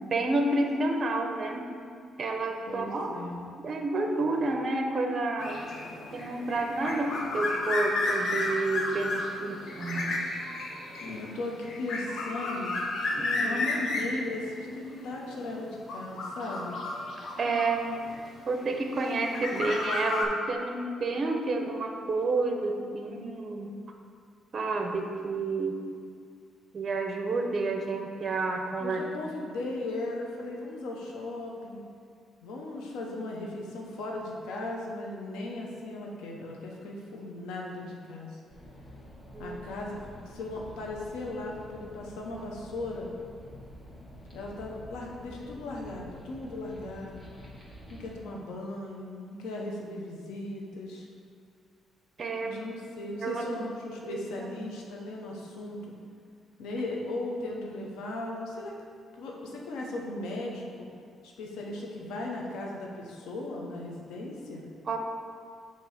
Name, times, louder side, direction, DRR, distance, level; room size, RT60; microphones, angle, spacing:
voice 1, 0.0-1.7 2.2-3.2 3.6-5.6 6.1-10.2 13.2-13.6 17.4-17.9 18.5-23.7 24.5-25.8 26.7-29.4 39.3-39.6 52.2-52.6 53.2-53.5 54.0-54.2 64.9-65.0, right 3 dB, 45° right, 3 dB, 0.8 m, -30 dB
voice 2, 2.7-3.4 11.0-12.8 13.4-16.8 28.8-31.8 32.4-38.4 39.4-43.1 44.3-47.2 47.9-51.1 52.4-55.9 56.6-58.7 59.2-60.9 61.2-64.7, left 2 dB, 90° left, -1 dB, 0.9 m, -37 dB
sound 1, 5.4-18.3 19.0-20.2, left 2 dB, 55° left, 0.9 m, -33 dB
sound 2, 38.5-48.1, equal, 20° left, 1.7 m, -48 dB
7.3 x 3.0 x 5.8 m, 2.2 s
cardioid pair, 90°, 0 cm